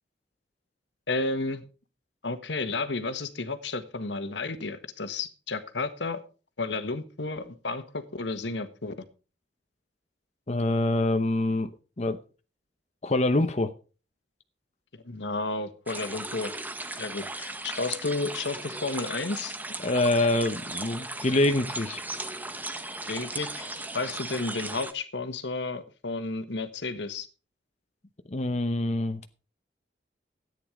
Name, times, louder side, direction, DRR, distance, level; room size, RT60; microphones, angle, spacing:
voice 1, 1.1-1.6 2.2-6.2 6.6-8.9 15.0-16.5 17.0-19.5 23.1-23.7 23.9-27.3, left 3 dB, 75° left, 10 dB, 1.4 m, -32 dB
voice 2, 10.5-11.7 12.0-12.2 13.0-13.7 19.8-22.0 28.3-29.3, left 2 dB, 40° left, 7 dB, 0.8 m, -25 dB
sound 1, 15.9-24.9, right 2 dB, 10° right, 0.9 m, -37 dB
13.5 x 9.3 x 5.0 m, 0.35 s
head